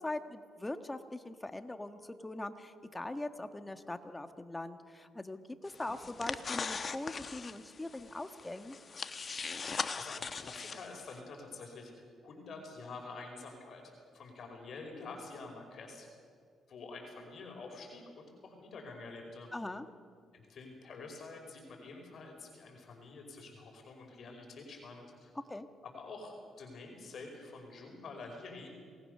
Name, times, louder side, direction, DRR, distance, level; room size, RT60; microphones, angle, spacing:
voice 1, 0.0-8.8 19.5-19.9 25.5-25.7, left 2 dB, 15° left, 8 dB, 1.5 m, -41 dB
sound 1, 5.6-11.2, left 5 dB, 40° left, 1.1 m, -40 dB
voice 2, 9.6-11.9 12.2-13.8 14.1-16.1 16.7-19.5 20.3-25.3 25.9-28.7, left 3 dB, 60° left, 2 dB, 5.3 m, -48 dB
27.0 x 19.5 x 6.8 m, 2.1 s
cardioid pair, 90°, 0 cm